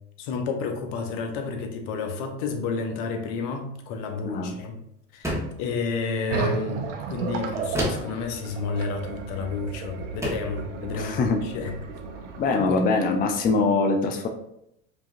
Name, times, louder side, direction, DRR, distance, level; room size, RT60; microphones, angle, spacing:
voice 1, 0.2-4.8 5.1-11.7 12.5-12.9, left 5 dB, 65° left, 5 dB, 0.8 m, -31 dB
voice 2, 4.2-4.6 10.9-11.4 12.4-14.3, left 3 dB, 25° left, 4 dB, 0.5 m, -23 dB
sound 1, 5.2-5.7 7.7-8.2 9.5-9.7 10.2-10.6, equal, 10° right, 1.1 m, -29 dB
sound 2, 6.3-13.5, right 4 dB, 80° right, 0.7 m, -33 dB
5.0 x 2.8 x 2.5 m, 0.77 s
hypercardioid pair, 90°, 36 cm